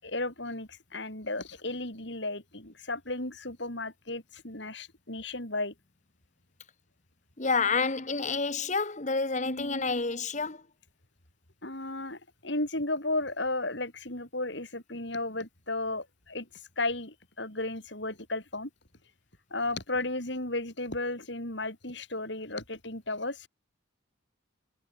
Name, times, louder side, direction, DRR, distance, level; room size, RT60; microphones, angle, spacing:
voice 1, 0.0-5.7 9.4-9.9 11.6-16.5 16.8-18.7 19.5-23.5, left 2 dB, 60° left, 6.1 m, -34 dB
voice 2, 7.4-10.6, left 4 dB, 35° left, 1.5 m, -29 dB
head